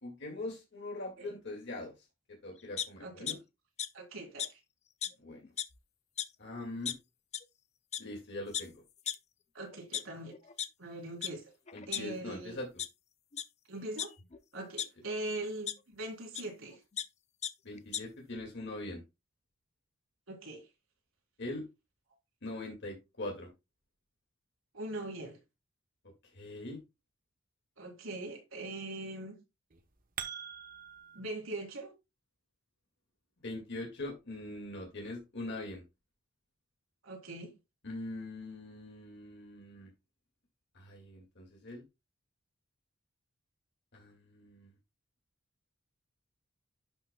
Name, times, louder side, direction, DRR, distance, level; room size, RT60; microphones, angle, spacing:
voice 1, 0.0-1.9 2.4-3.4 5.2-5.4 6.4-6.9 8.0-8.7 11.7-12.7 17.6-19.0 21.4-21.6 22.4-23.5 26.2-26.8 33.4-35.8 37.8-39.9 40.7-41.8 43.9-44.7, left 2 dB, 60° left, 2.2 m, -42 dB
sound 1, 2.8-3.3 3.8-3.9 4.4-4.5 5.0-5.1 5.4-5.8 6.2-6.3 6.9-7.0 7.3-7.4 7.9-8.0 8.5-8.6 9.1-9.2 9.7-10.7 11.2-11.3 11.7-12.4 12.8-12.9 13.3-13.4 14.0-14.9 15.7-15.8 16.3-16.4 16.7-17.0 17.4-17.5 17.8-18.0, left 9 dB, 35° left, 0.6 m, -35 dB
voice 2, 3.0-3.3 3.9-4.6 9.5-10.3 10.8-11.5 11.9-12.6 13.7-14.1 14.5-16.8 20.3-20.6 24.7-25.4 27.8-29.4 31.1-31.9 37.0-37.5, right 2 dB, 85° right, 3.7 m, -41 dB
sound 2, 29.7-31.2, right 8 dB, 45° right, 1.0 m, -43 dB
11.5 x 5.8 x 2.3 m
head